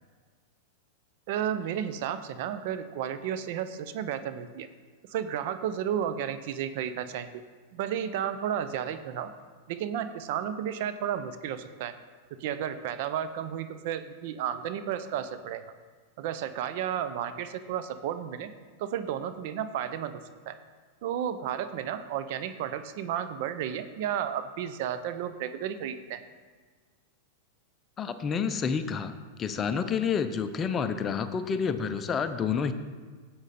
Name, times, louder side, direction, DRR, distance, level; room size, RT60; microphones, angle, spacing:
voice 1, 1.3-4.7 5.0-7.4 7.7-9.3 9.7-11.9 12.4-15.6 16.2-18.5 18.8-20.6 21.0-26.2, right 9 dB, 60° right, 11 dB, 0.7 m, -32 dB
voice 2, 28.0-29.1 29.4-32.7, left 6 dB, 25° left, 9 dB, 0.7 m, -29 dB
11.5 x 7.9 x 4.3 m, 1.5 s
hypercardioid pair, 120°, 0 cm